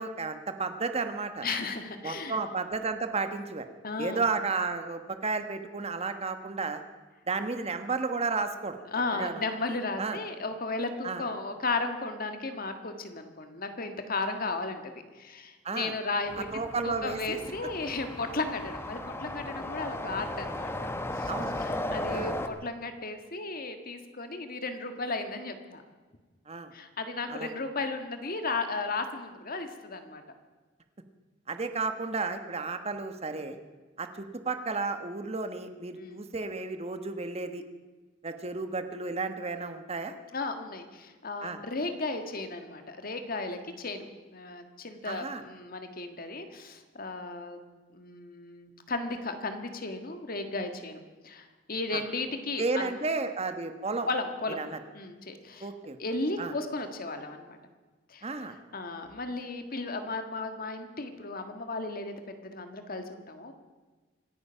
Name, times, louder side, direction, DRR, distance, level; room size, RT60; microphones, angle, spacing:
voice 1, 0.0-1.5 2.0-3.7 4.0-6.8 7.3-8.8 9.1-9.4 10.0-10.2 11.0-11.2 15.6-15.9 16.5-17.4 21.3-21.6 22.1-22.3 26.5-26.7 27.3-27.5 31.5-33.6 34.0-37.6 38.2-40.1 41.4-41.6 45.0-45.4 51.9-52.0 52.6-54.1 54.6-54.8 55.6-56.0 56.4-56.5 58.2-58.6, right 4 dB, 35° right, 8 dB, 1.2 m, -32 dB
voice 2, 1.4-2.4 3.8-4.3 8.9-16.5 16.8-20.9 21.2-21.3 21.6-25.8 26.7-30.2 36.0-36.2 40.3-44.1 44.3-47.6 47.9-52.9 54.0-54.6 54.9-55.7 56.0-57.6 58.1-58.2 58.7-63.5, left 3 dB, 50° left, 7 dB, 1.7 m, -35 dB
sound 1, 16.3-22.5, left 1 dB, 15° left, 1.0 m, -36 dB
26.0 x 9.6 x 5.7 m, 1.3 s
head